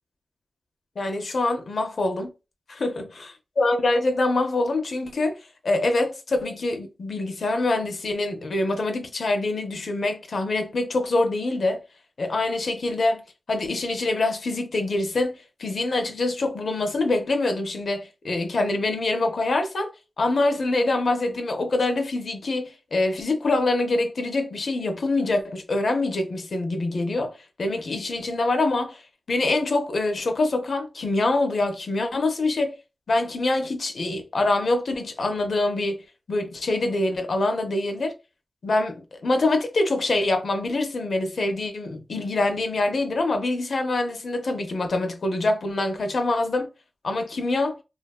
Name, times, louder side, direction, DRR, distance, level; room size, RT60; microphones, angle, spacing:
voice 1, 1.0-2.3 2.7-3.3 3.6-11.8 12.2-13.2 13.5-19.9 20.2-29.0 29.3-32.8 33.1-36.0 36.3-38.2 38.6-46.7 47.0-47.8, left 2 dB, 75° left, 0.5 m, -25 dB
2.5 x 2.3 x 2.2 m
cardioid pair, 40°, 0 cm